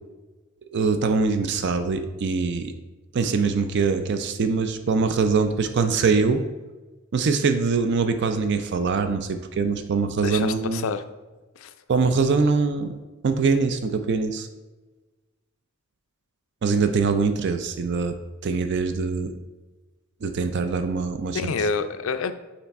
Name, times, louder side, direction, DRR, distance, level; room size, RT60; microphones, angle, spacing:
voice 1, 0.7-2.7 3.1-6.4 7.1-10.9 11.9-13.0 13.2-14.5 16.6-18.2 18.4-19.3 20.2-21.5, right 4 dB, 55° right, 8 dB, 0.4 m, -23 dB
voice 2, 10.2-11.0 11.6-11.7 21.3-22.3, left 5 dB, 70° left, 10 dB, 0.4 m, -27 dB
5.7 x 4.3 x 4.2 m, 1.2 s
head